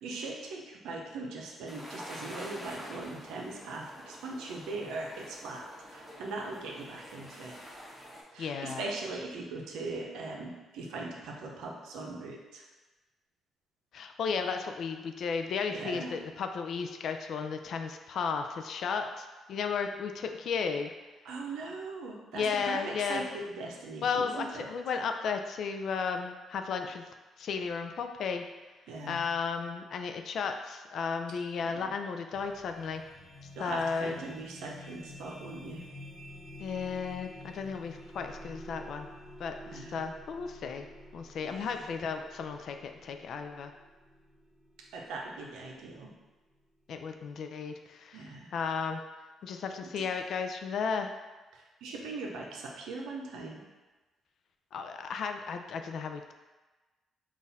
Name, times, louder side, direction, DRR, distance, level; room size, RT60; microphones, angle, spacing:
voice 1, 0.0-7.6 8.3-12.6 15.7-16.1 21.2-24.7 28.9-29.2 31.6-31.9 33.6-35.8 39.7-40.1 41.4-41.9 44.9-46.1 48.1-48.5 49.8-49.9 51.5-53.6, right 3 dB, 90° right, 0 dB, 0.7 m, -40 dB
sound 1, 1.7-8.2, equal, 5° right, 1.4 m, -47 dB
voice 2, 8.4-8.8 13.9-20.9 22.3-23.3 24.0-27.0 27.4-28.4 29.1-33.0 33.6-34.2 36.6-39.1 39.4-40.9 41.1-43.7 46.9-49.0 49.4-51.1 54.7-56.3, left 5 dB, 65° left, 6 dB, 0.4 m, -34 dB
sound 2, 32.3-46.3, left 1 dB, 20° left, 0.7 m, -50 dB
3.9 x 2.5 x 4.0 m, 1.2 s
cardioid pair, 90°, 0 cm